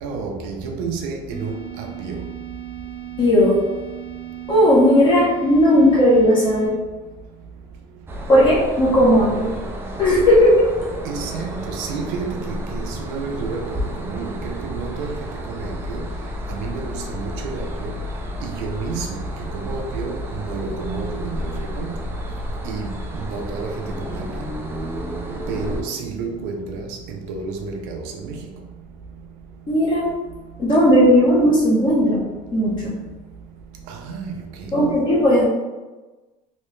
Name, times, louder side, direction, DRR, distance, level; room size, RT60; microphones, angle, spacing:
voice 1, 0.0-2.2 11.0-15.2 15.5-16.1 16.5-17.9 18.4-19.2 19.5-21.9 22.6-24.3 25.5-28.4 33.9-35.0, right 4 dB, 80° right, 2 dB, 0.6 m, -30 dB
sound 1, 1.3-6.7, right 11 dB, 5° left, 1.0 m, -36 dB
voice 2, 3.2-3.6 4.5-6.8 8.3-9.5 10.0-10.7 29.7-30.1 30.6-32.2 32.5-33.0 34.7-35.4, equal, 30° left, -6 dB, 0.8 m, -16 dB
sound 2, 8.1-25.8, equal, 15° right, 0.3 m, -31 dB
3.1 x 2.8 x 3.1 m, 1.2 s
cardioid pair, 165°, 15 cm